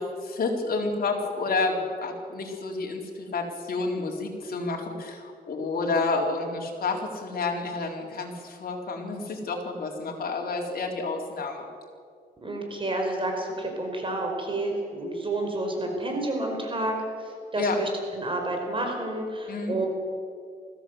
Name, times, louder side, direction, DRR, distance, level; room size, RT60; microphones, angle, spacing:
voice 1, 0.0-11.7 17.6-17.8 19.5-19.8, left 3 dB, 60° left, 1 dB, 4.2 m, -30 dB
voice 2, 12.4-17.0 17.2-19.9, right 2 dB, 30° right, 2 dB, 5.0 m, -30 dB
21.0 x 16.0 x 8.0 m, 2.3 s
cardioid pair, 80°, 17 cm